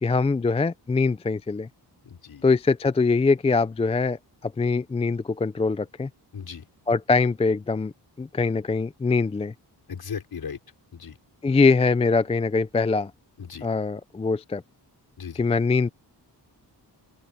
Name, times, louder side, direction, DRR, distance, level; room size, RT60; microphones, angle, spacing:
voice 1, 0.0-1.7 2.4-6.1 6.9-7.9 8.2-9.5 11.4-13.1 13.6-14.6 15.4-15.9, left 4 dB, 15° left, 0.4 m, -23 dB
voice 2, 2.1-2.4 6.3-6.6 9.9-10.6 10.9-11.2 13.4-13.7 15.2-15.5, left 6 dB, 60° left, 5.6 m, -37 dB
open air
wide cardioid pair, 135°, 42 cm